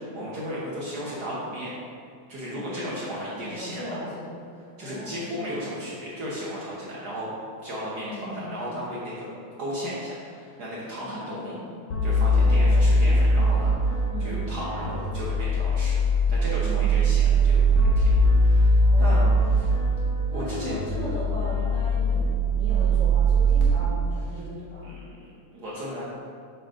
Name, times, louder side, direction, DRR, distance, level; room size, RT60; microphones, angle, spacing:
voice 1, 0.1-1.7 2.3-4.0 4.8-7.3 7.6-9.3 9.6-11.6 12.0-19.7 20.3-20.7 24.8-25.0 25.5-26.0, equal, 85° right, -7 dB, 0.8 m, -35 dB
voice 2, 2.4-2.9 3.5-4.4 4.8-5.5 8.1-8.4 11.0-11.6 12.3-12.9 14.1-14.5 16.6-17.0 18.9-19.5 20.3-24.8, equal, 90° left, -13 dB, 3.3 m, -37 dB
sound 1, 11.9-23.6, right 1 dB, 65° left, 1.2 m, -21 dB
7.4 x 4.5 x 5.1 m, 2.3 s
omnidirectional pair, 3.6 m